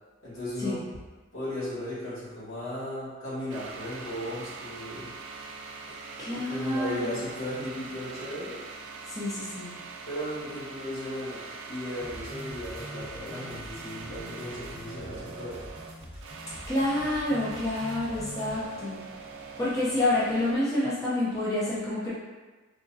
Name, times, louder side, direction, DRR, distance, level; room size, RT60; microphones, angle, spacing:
voice 1, 0.2-0.8 1.3-5.1 6.3-8.6 10.0-15.6, left 1 dB, 75° left, -9 dB, 1.3 m, -36 dB
sound 1, 3.5-20.6, right 4 dB, 60° right, 0.4 m, -43 dB
voice 2, 6.2-7.1 9.1-9.7 16.7-19.0 19.6-22.1, left 1 dB, 15° left, -9 dB, 0.6 m, -28 dB
sound 2, 12.0-18.6, right 1 dB, 25° right, 1.1 m, -44 dB
3.6 x 2.1 x 2.6 m, 1.3 s
head